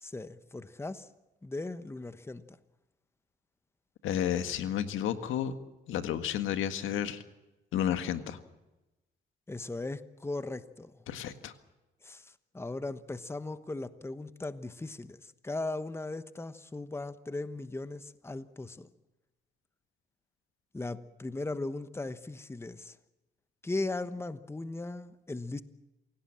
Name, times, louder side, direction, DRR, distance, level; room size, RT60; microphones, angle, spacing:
voice 1, 0.0-1.1 1.4-2.6 9.5-10.9 12.0-18.9 20.7-23.0 23.6-25.6, left 2 dB, 10° left, 12 dB, 1.1 m, -38 dB
voice 2, 4.0-5.5 5.9-7.2 7.7-8.4 11.1-11.5, left 10 dB, 85° left, 9 dB, 1.8 m, -31 dB
27.5 x 17.5 x 7.6 m, 1.0 s
cardioid pair, 90°, 20 cm